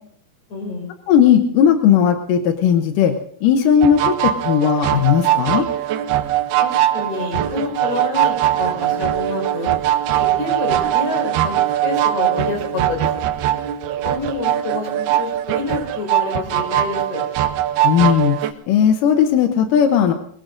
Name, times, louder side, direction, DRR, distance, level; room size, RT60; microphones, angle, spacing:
voice 1, 0.5-0.9 6.6-9.7 10.2-11.5 11.8-13.1 14.0-17.2, left 4 dB, 50° left, 2 dB, 6.2 m, -28 dB
voice 2, 1.1-3.1 3.4-5.7 17.8-18.4 18.7-20.1, left 8 dB, 70° left, 6 dB, 2.2 m, -16 dB
sound 1, 3.8-18.5, right 12 dB, 85° right, 2.8 m, -21 dB
23.5 x 20.5 x 2.6 m, 0.67 s
omnidirectional pair, 4.4 m